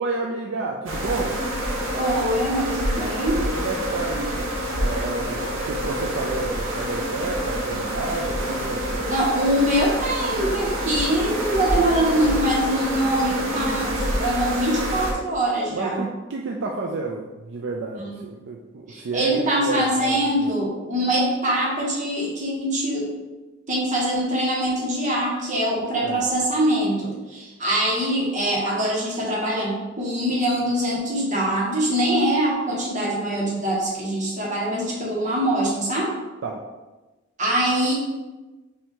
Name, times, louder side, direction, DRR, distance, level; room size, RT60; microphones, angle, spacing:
voice 1, 0.0-1.4 3.5-9.1 15.7-19.3 19.6-20.4 26.0-26.2 36.4-36.6, right 3 dB, 65° right, 0 dB, 0.4 m, -30 dB
sound 1, 0.9-15.1, equal, 80° right, 0.9 m, -27 dB
voice 2, 1.9-3.4 9.1-16.0 17.9-18.2 18.9-23.1 23.7-36.1 37.4-37.9, right 1 dB, 40° right, -5 dB, 1.3 m, -23 dB
5.4 x 2.7 x 3.6 m, 1.2 s
head